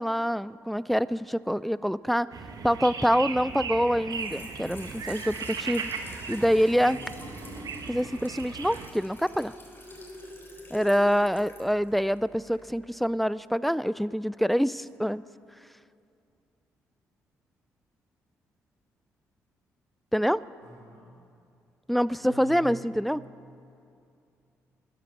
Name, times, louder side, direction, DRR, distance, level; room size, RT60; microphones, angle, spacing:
voice 1, 0.0-2.3 2.6-5.9 6.3-7.0 7.9-9.5 10.7-15.2 20.1-20.4 21.9-23.2, equal, ahead, 18 dB, 0.4 m, -26 dB
sound 1, 2.3-8.9, right 5 dB, 55° right, 1.1 m, -37 dB
Trickle dribble / Fill (with liquid), 4.0-12.7, left 1 dB, 30° left, 3.9 m, -47 dB
voice 2, 6.6-7.1 20.6-21.1 22.2-23.0, left 1 dB, 85° right, -3 dB, 3.3 m, -46 dB
13.5 x 9.8 x 6.0 m, 2.6 s
hypercardioid pair, 45°, 7 cm